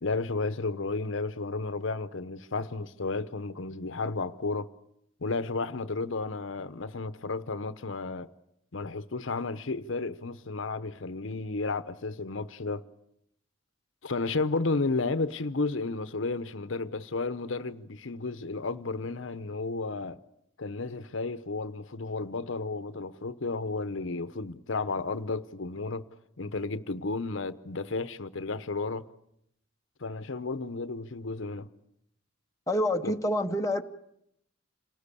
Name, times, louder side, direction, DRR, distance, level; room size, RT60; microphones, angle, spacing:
voice 1, 0.0-4.7 5.2-8.3 8.7-12.8 14.0-20.2 20.6-26.1 26.4-29.1 30.0-31.7 33.0-33.1, left 3 dB, 70° left, 0.9 m, -32 dB
voice 2, 32.7-33.8, left 1 dB, 15° left, 0.8 m, -27 dB
27.0 x 19.0 x 8.4 m
head